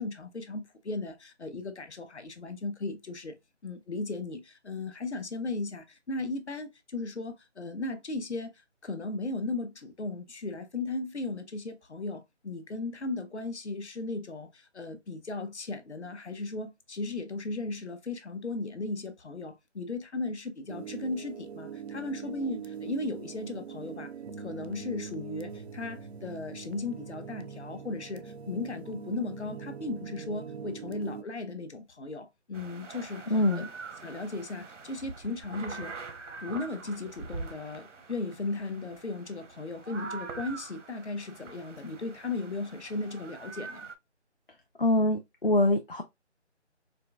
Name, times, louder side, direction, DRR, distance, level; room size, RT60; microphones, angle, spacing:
voice 1, 0.0-3.4 3.6-8.5 8.8-24.1 24.4-33.3 33.5-33.6 34.0-35.9 36.4-43.9, left 3 dB, 70° left, 0.8 m, -36 dB
sound 1, 20.7-31.2, right 6 dB, 60° right, 0.5 m, -42 dB
sound 2, 32.5-44.0, right 4 dB, 90° right, 0.8 m, -44 dB
voice 2, 33.3-33.7 44.8-46.0, left 1 dB, 50° left, 0.5 m, -24 dB
4.4 x 2.5 x 2.2 m
figure-of-eight pair, 180°, 36 cm